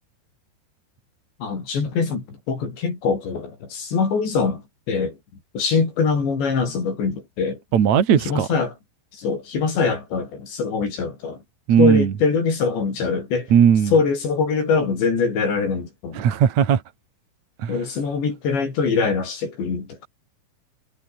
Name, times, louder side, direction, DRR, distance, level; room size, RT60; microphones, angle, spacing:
voice 1, 1.4-5.2 5.6-7.6 8.1-8.7 9.1-11.4 11.8-13.5 13.9-16.2 17.7-20.1, left 5 dB, 70° left, 8.6 m, -23 dB
voice 2, 7.7-8.5 11.7-12.1 13.5-13.9 16.1-16.8 17.6-17.8, right 8 dB, 45° right, 3.0 m, -17 dB
omnidirectional pair, 5.2 m